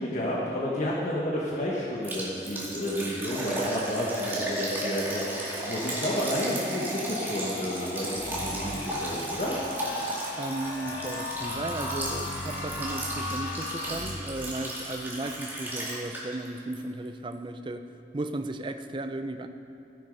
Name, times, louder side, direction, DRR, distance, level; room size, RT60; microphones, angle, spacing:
voice 1, 0.0-9.6, equal, 45° left, -5 dB, 1.5 m, -31 dB
Liquid, 2.0-16.5 16.7-16.8 17.3-17.4, right 1 dB, 10° right, 2.2 m, -34 dB
sound 1, 8.1-14.6, left 2 dB, 65° left, 1.4 m, -37 dB
voice 2, 10.4-19.5, right 2 dB, 30° right, 8 dB, 0.5 m, -35 dB
15.0 x 9.0 x 5.4 m, 2.7 s
head